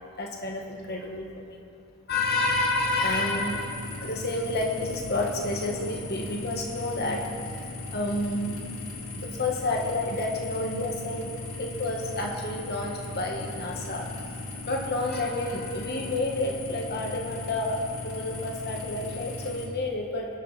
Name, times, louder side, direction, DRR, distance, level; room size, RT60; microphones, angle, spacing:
voice 1, 0.2-1.6 2.1-7.3 7.9-8.6 9.1-11.3 11.6-14.0 14.7-20.3, left 2 dB, 50° left, 0 dB, 1.6 m, -30 dB
sound 1, 2.1-19.7, left 2 dB, 75° left, 1.7 m, -38 dB
22.0 x 11.0 x 4.2 m, 2.5 s
head